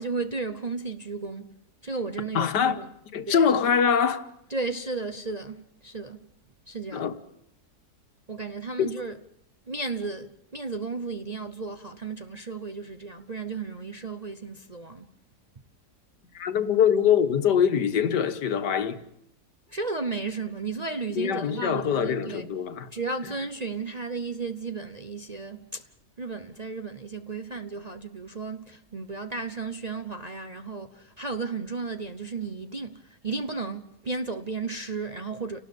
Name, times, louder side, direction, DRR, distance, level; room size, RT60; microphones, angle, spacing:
voice 1, 0.0-1.6 1.8-2.9 3.3-3.5 4.5-6.3 6.7-7.1 8.3-9.2 9.7-15.1 19.7-22.5 22.9-25.9 26.2-35.6, right 4 dB, 35° right, 0.6 m, -34 dB
voice 2, 2.4-2.8 3.1-4.3 6.9-7.2 8.8-8.9 16.3-19.0 21.1-22.9 23.3-23.4, left 7 dB, 90° left, 1.8 m, -23 dB
29.5 x 19.0 x 5.3 m
omnidirectional pair, 1.8 m